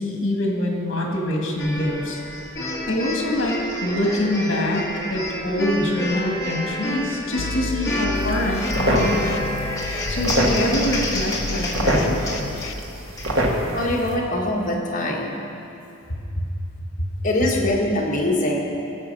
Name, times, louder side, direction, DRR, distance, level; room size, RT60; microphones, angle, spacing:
voice 1, 0.0-2.2 2.9-9.3 10.1-12.2 16.4-16.5 17.0-17.1, left 1 dB, 60° left, 0 dB, 1.9 m, -24 dB
sound 1, 1.6-13.3, left 1 dB, 15° left, 1.5 m, -29 dB
sound 2, 7.4-12.7, left 2 dB, 80° left, 0.6 m, -31 dB
sound 3, 8.1-14.1, equal, 80° right, 1.4 m, -26 dB
voice 2, 13.7-15.4 17.2-18.6, left 1 dB, 40° left, -2 dB, 1.6 m, -23 dB
15.5 x 7.2 x 5.5 m, 2.7 s
head